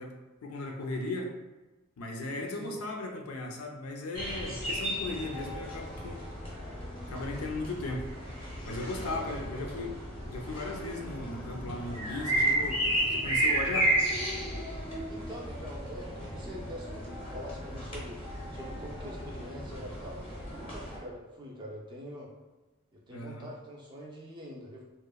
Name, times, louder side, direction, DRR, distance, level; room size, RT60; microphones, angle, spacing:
voice 1, 0.0-1.3 2.0-6.2 7.1-8.1 8.6-9.9 10.3-13.9 23.1-23.5, left 2 dB, 90° left, 2 dB, 0.4 m, -37 dB
sound 1, 4.1-21.0, right 1 dB, 25° left, 0.5 m, -33 dB
voice 2, 9.0-9.7 15.1-18.2 18.5-22.3 22.9-24.8, equal, 20° right, -2 dB, 0.3 m, -45 dB
2.9 x 2.0 x 2.3 m, 1.1 s
head